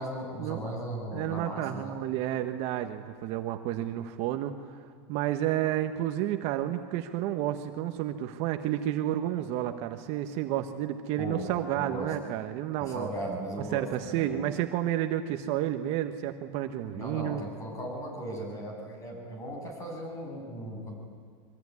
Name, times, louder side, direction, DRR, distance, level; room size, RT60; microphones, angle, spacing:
voice 1, 0.0-1.9 11.2-11.5 11.8-12.1 12.8-14.4 16.9-20.9, right 1 dB, 20° left, 1 dB, 7.8 m, -37 dB
voice 2, 1.1-4.5 5.1-13.1 13.7-17.4, right 12 dB, 45° right, 7 dB, 1.3 m, -31 dB
25.5 x 24.0 x 9.8 m, 2.2 s
supercardioid pair, 165°, 15 cm